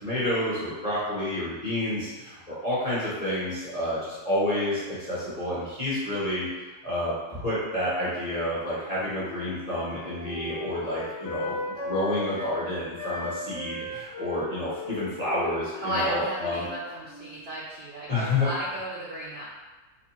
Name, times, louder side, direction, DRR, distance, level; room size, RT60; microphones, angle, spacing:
voice 1, 0.0-2.0 2.6-4.0 4.2-4.7 5.1-6.4 6.8-7.1 7.4-11.5 11.8-13.7 14.2-16.6 18.1-18.5, left 1 dB, 25° left, -10 dB, 1.0 m, -29 dB
Wind instrument woodwind instrument, 8.6-12.6 12.9-17.4, left 2 dB, 75° left, 0.6 m, -37 dB
voice 2, 15.8-19.4, equal, 75° right, -6 dB, 0.5 m, -33 dB
4.1 x 2.5 x 2.9 m, 1.2 s
omnidirectional pair, 1.9 m